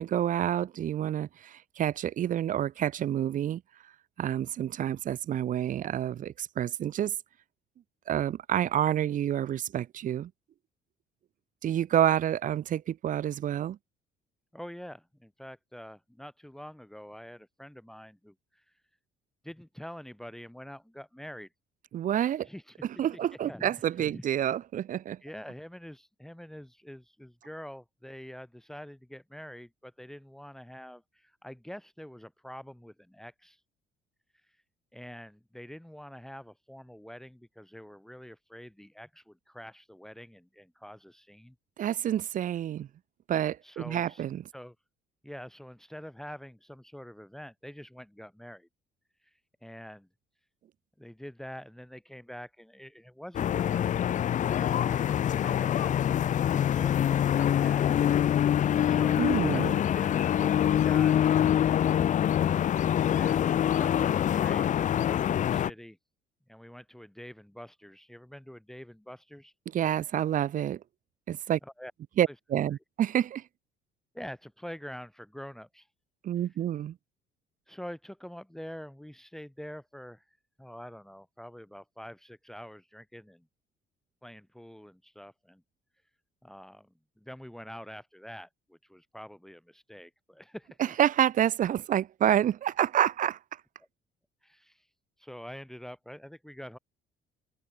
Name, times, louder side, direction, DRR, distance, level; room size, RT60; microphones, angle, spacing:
voice 1, 0.0-3.6 4.2-7.2 8.1-10.3 11.6-13.8 21.9-22.5 22.8-25.2 41.8-42.9 43.3-44.4 59.2-59.8 69.7-70.8 71.3-71.6 72.2-73.4 76.2-77.0 90.8-93.4, right 11 dB, 50° right, 1.0 m, -28 dB
voice 2, 14.5-18.7 19.4-21.5 22.4-22.8 23.4-23.7 24.0-24.2 25.2-33.6 34.5-34.6 34.9-41.5 43.6-44.2 44.5-44.7 45.2-48.7 49.2-50.1 51.0-53.9 54.1-55.9 56.4-57.9 58.3-59.2 63.1-66.0 66.5-69.5 71.6-71.9 72.3-72.4 74.1-75.9 77.7-83.4 84.2-85.6 86.4-86.9 87.2-90.9 94.4-94.9 95.2-96.8, equal, ahead, 2.8 m, -46 dB
sound 1, 53.3-65.7, left 10 dB, 50° left, 0.9 m, -25 dB
open air
cardioid pair, 110°, 17 cm